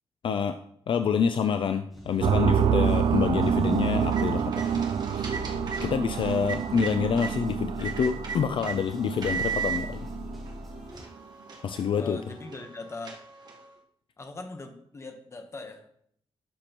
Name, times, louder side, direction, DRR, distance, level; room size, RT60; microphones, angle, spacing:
voice 1, 0.9-4.8 5.2-5.3 5.8-10.1 11.6-12.2, left 7 dB, 60° left, 8 dB, 0.4 m, -27 dB
sound 1, 1.9-11.0, left 2 dB, ahead, 3.1 m, -41 dB
sound 2, 2.2-10.9, right 7 dB, 70° right, 0.4 m, -28 dB
sound 3, 3.9-7.3 7.8-8.8 9.2-9.8 10.5-10.6 10.9-13.7, right 6 dB, 45° right, 1.3 m, -37 dB
voice 2, 12.0-13.2 14.2-15.9, left 3 dB, 30° left, 6 dB, 0.9 m, -40 dB
11.5 x 6.1 x 2.9 m, 0.66 s
wide cardioid pair, 175°, 10 cm